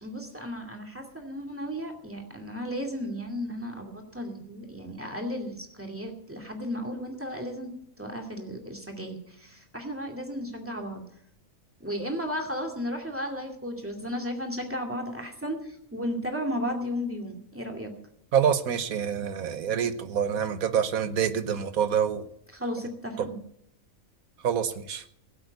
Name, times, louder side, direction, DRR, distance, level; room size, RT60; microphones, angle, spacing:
voice 1, 0.0-7.7 8.0-11.0 11.8-17.9 22.5-23.4, equal, 10° right, 3 dB, 2.3 m, -34 dB
voice 2, 18.3-22.3 24.4-25.0, right 8 dB, 85° right, 11 dB, 1.5 m, -26 dB
17.0 x 8.0 x 8.0 m, 0.72 s
omnidirectional pair, 1.4 m